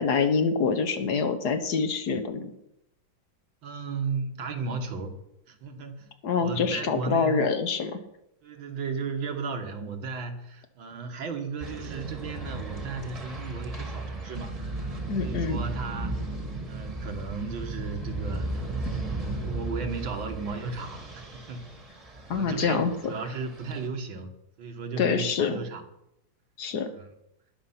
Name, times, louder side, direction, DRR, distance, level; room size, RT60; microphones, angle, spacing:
voice 1, 0.0-2.5 6.2-8.0 15.1-15.6 22.3-22.9 25.0-25.6 26.6-26.9, left 5 dB, 60° left, 9 dB, 1.6 m, -26 dB
voice 2, 3.6-5.2 5.5-6.1 6.4-7.5 8.4-14.6 15.1-16.2 16.6-18.6 19.0-21.6 22.3-24.3 24.6-25.9 26.9-27.1, right 4 dB, 80° right, 5 dB, 2.2 m, -35 dB
sound 1, 11.6-23.9, right 2 dB, 20° right, 1.4 m, -35 dB
19.5 x 6.8 x 5.8 m, 0.82 s
omnidirectional pair, 2.1 m